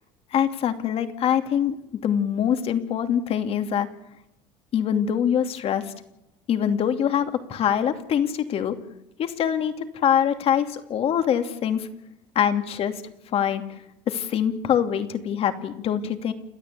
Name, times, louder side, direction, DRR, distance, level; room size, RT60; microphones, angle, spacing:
voice 1, 0.3-1.8 2.0-3.9 4.7-5.8 6.5-8.7 9.2-11.9 12.3-12.9 13.3-13.6 14.1-16.3, left 9 dB, 50° left, 8 dB, 2.8 m, -24 dB
29.5 x 13.0 x 8.5 m, 0.84 s
supercardioid pair, 110°, 13 cm